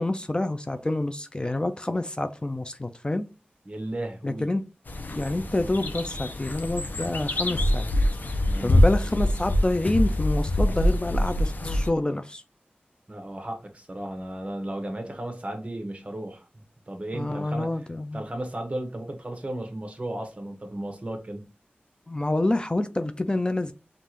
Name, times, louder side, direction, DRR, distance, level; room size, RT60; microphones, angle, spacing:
voice 1, 0.0-3.3 4.2-4.6 5.1-7.9 8.6-12.4 17.1-18.2 22.1-23.7, left 2 dB, 25° left, 0.3 m, -27 dB
voice 2, 3.6-4.5 8.4-8.7 13.1-17.7 18.1-21.5, right 1 dB, 35° right, 1.1 m, -35 dB
sound 1, 4.9-11.9, left 1 dB, 55° left, 0.7 m, -25 dB
5.4 x 2.5 x 3.0 m
wide cardioid pair, 60°, 4 cm